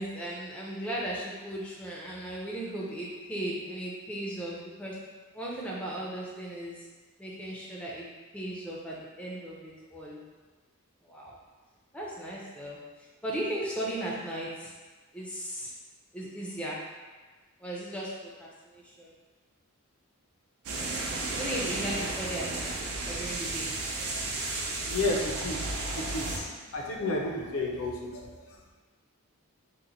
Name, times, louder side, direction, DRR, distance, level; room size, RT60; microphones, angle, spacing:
voice 1, 0.0-5.0 5.3-6.9 7.2-8.1 8.3-10.2 11.0-11.4 11.9-14.7 15.1-15.7 16.1-16.8 17.6-19.1 21.3-22.7 23.0-23.7, right 1 dB, 5° left, -5 dB, 0.4 m, -36 dB
sound 1, 20.6-26.4, right 2 dB, 75° right, 0.5 m, -33 dB
voice 2, 24.7-28.6, left 2 dB, 70° left, 0 dB, 0.5 m, -32 dB
2.9 x 2.1 x 3.8 m, 1.3 s
head